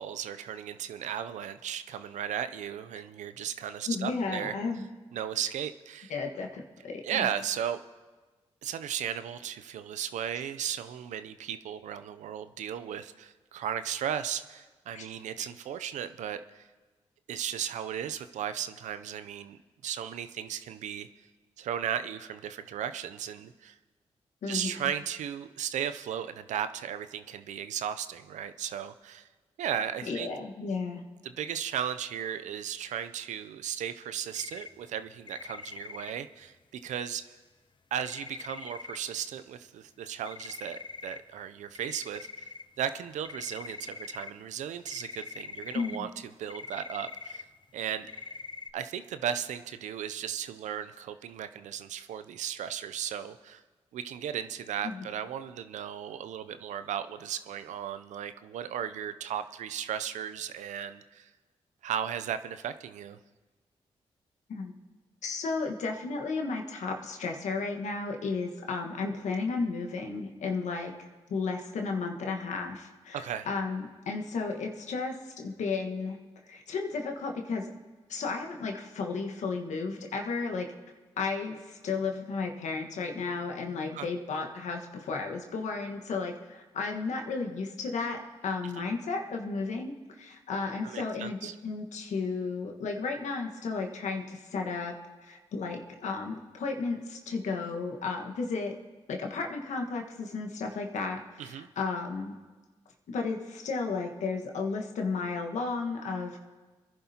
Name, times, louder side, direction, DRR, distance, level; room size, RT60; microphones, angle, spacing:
voice 1, 0.0-4.5 5.1-6.1 7.0-7.8 8.6-16.7 17.3-21.1 21.6-23.8 24.5-29.3 29.6-30.3 31.2-37.2 37.9-46.1 46.4-47.5 47.7-48.1 48.7-53.6 53.9-61.3 61.8-63.2 73.1-73.5 83.9-84.1 88.8-88.9 90.8-91.6 101.4-101.7, right 9 dB, 80° right, 11 dB, 0.5 m, -36 dB
voice 2, 3.9-4.9 6.1-7.3 14.9-15.0 24.4-24.7 30.0-31.0 45.7-46.1 54.8-55.0 64.5-64.7 65.2-70.9 71.3-76.2 76.5-77.7 78.1-80.7 81.2-94.9 95.2-98.7 99.1-102.4 103.1-106.4, left 4 dB, 75° left, 2 dB, 1.5 m, -33 dB
sound 1, 34.3-34.7 35.3-36.1 38.0-39.0 40.3-41.2 41.4-41.5 41.7-42.6 43.2-44.3 44.9-46.0 46.5-47.4 48.1-48.7, left 4 dB, 40° left, 0.6 m, -43 dB
24.0 x 11.0 x 2.9 m, 1.3 s
supercardioid pair, 45°, 12 cm